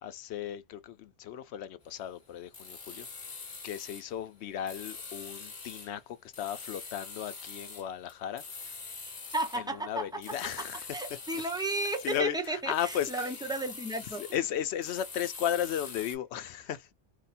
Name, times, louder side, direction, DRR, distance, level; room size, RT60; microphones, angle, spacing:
voice 1, 0.0-3.1 3.6-8.4 9.6-10.8 12.0-13.3 14.2-16.9, left 10 dB, 75° left, 0.8 m, -35 dB
sound 1, 2.5-4.1 4.7-5.9 6.3-9.7 10.2-14.4 14.8-16.1, left 4 dB, 40° left, 1.1 m, -44 dB
voice 2, 9.3-10.2 10.6-14.2, right 2 dB, 5° right, 0.6 m, -34 dB
3.0 x 2.2 x 4.0 m
omnidirectional pair, 1.2 m